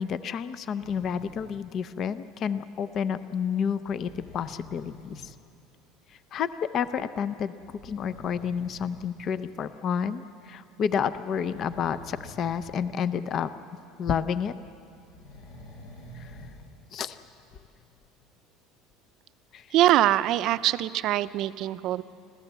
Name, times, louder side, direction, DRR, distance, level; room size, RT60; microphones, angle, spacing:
voice 1, 0.0-5.3 6.3-7.5 7.8-13.5 14.0-14.5 16.1-16.3 16.9-17.2 19.5-19.7, left 7 dB, 35° left, 13 dB, 0.6 m, -30 dB
sound 1, 0.8-1.5 3.8-5.3 6.7-6.8 7.6-9.0 9.7-9.8 11.2-12.9 13.2-13.3 15.0-16.7 17.2-17.3, left 1 dB, 80° left, 7.0 m, -48 dB
voice 2, 19.7-22.0, right 14 dB, 45° right, 14 dB, 0.5 m, -23 dB
25.5 x 15.5 x 8.1 m, 2.5 s
cardioid pair, 155°, 0 cm